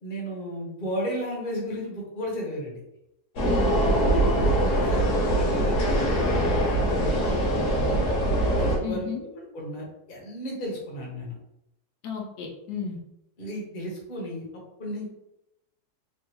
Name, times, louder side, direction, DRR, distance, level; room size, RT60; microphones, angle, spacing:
voice 1, 0.0-2.8 4.1-8.0 8.6-11.3 13.4-14.4 14.8-15.1, equal, 40° left, -2 dB, 0.9 m, -34 dB
sound 1, 3.4-8.8, right 1 dB, 55° left, 1.2 m, -23 dB
voice 2, 8.8-9.2 12.0-13.0, left 6 dB, 85° left, 0 dB, 1.2 m, -33 dB
3.4 x 2.4 x 2.9 m, 0.86 s
omnidirectional pair, 1.7 m